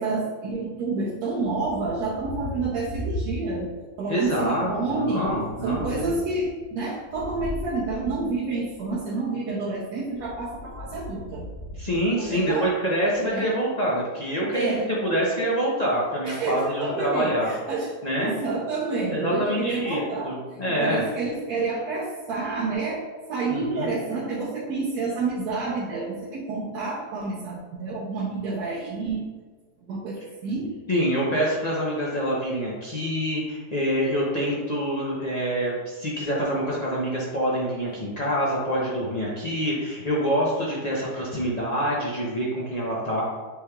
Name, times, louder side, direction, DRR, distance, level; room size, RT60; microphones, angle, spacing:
voice 1, 0.0-5.3 5.6-11.5 12.2-12.7 13.3-13.5 14.5-14.9 16.2-17.9 18.2-29.2 29.8-30.2 30.4-30.7, right 3 dB, 75° right, -6 dB, 1.3 m, -29 dB
Thunder, 1.4-3.8 4.2-9.0 10.0-12.7, equal, 70° left, 1.1 m, -38 dB
voice 2, 4.1-6.2 11.8-17.5 18.0-18.3 19.1-21.0 23.5-23.9 30.9-43.2, equal, 45° left, -5 dB, 0.5 m, -26 dB
6.3 x 3.3 x 2.3 m, 1.3 s
omnidirectional pair, 1.7 m